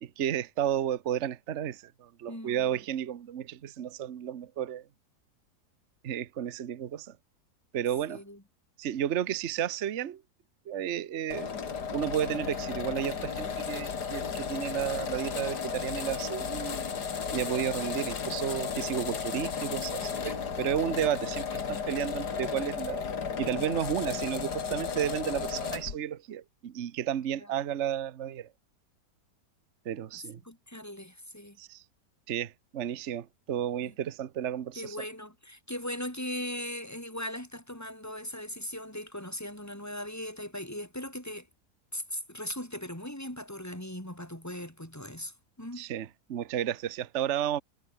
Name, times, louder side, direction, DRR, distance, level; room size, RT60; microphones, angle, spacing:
voice 1, 0.0-4.9 6.0-7.2 7.7-8.2 8.8-10.2 10.7-11.5 11.9-16.8 17.3-23.1 23.4-28.5 29.8-30.4 31.6-31.8 32.3-35.0 45.8-47.6, right 10 dB, 50° right, 1.1 m, -32 dB
voice 2, 2.3-2.7 8.1-8.4 20.8-21.1 24.0-24.3 27.4-27.5 30.4-31.6 33.8-33.9 34.7-41.5 41.9-45.8, left 1 dB, 10° left, 5.4 m, -39 dB
sound 1, 11.3-26.0, left 6 dB, 70° left, 2.6 m, -34 dB
omnidirectional pair, 1.8 m